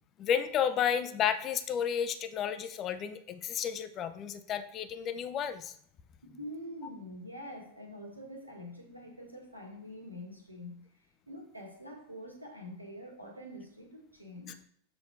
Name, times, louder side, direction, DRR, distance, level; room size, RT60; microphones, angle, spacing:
voice 1, 0.2-5.7 14.5-14.6, left 8 dB, 30° left, 11 dB, 0.7 m, -32 dB
voice 2, 6.2-10.8 11.3-14.6, equal, 85° right, 0 dB, 1.7 m, -45 dB
7.7 x 4.1 x 4.6 m, 0.64 s
figure-of-eight pair, 90°, 0 cm